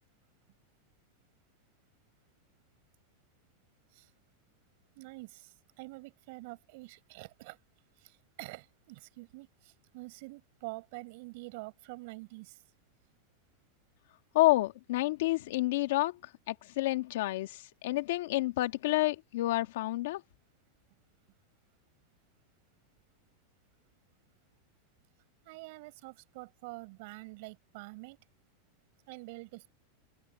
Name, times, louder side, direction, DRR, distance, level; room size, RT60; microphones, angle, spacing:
voice 1, 5.0-7.6 8.0-12.6 25.4-28.2 29.1-29.7, right 25 dB, 45° right, 5.5 m, -47 dB
voice 2, 14.3-20.2, left 18 dB, 60° left, 1.9 m, -29 dB
supercardioid pair, 175°, 0 cm